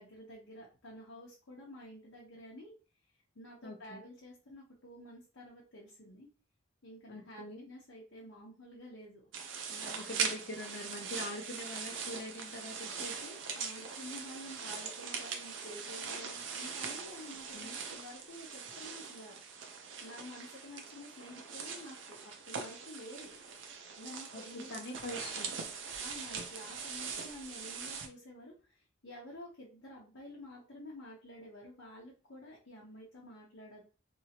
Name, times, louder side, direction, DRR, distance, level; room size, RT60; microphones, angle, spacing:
voice 1, 0.0-2.7 3.3-6.3 6.8-9.3 9.7-10.0 13.5-22.2 22.5-23.3 24.0-24.7 26.0-33.8, left 1 dB, 85° left, -5 dB, 1.0 m, -50 dB
voice 2, 3.6-4.0 7.1-7.7 10.0-13.4 17.5-17.8 24.3-25.5, left 1 dB, 55° left, 3 dB, 0.7 m, -44 dB
sound 1, 9.3-28.1, right 6 dB, 70° right, 0.6 m, -41 dB
3.0 x 2.8 x 2.8 m, 0.34 s
head